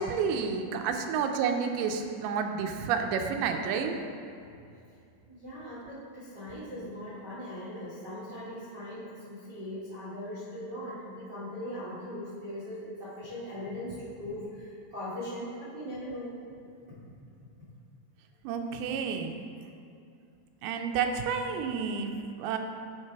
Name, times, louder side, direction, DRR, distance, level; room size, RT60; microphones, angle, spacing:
voice 1, 0.0-4.0 18.4-19.4 20.6-22.6, right 6 dB, 90° right, 5 dB, 2.5 m, -30 dB
voice 2, 5.3-16.3 18.7-18.9, left 1 dB, 70° right, -12 dB, 1.0 m, -40 dB
9.6 x 3.3 x 4.5 m, 2.5 s
omnidirectional pair, 4.4 m